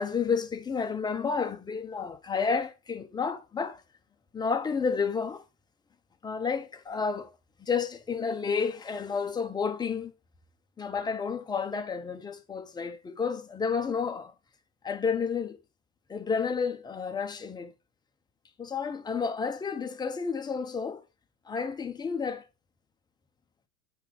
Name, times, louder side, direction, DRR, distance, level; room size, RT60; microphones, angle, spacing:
voice 1, 0.0-3.8 4.3-5.4 6.2-7.3 7.6-10.1 10.8-14.3 14.8-15.6 16.1-17.7 18.6-21.1 21.5-22.4, left 5 dB, 10° left, 0.6 m, -31 dB
8.2 x 4.6 x 3.8 m
hypercardioid pair, 105°, 46 cm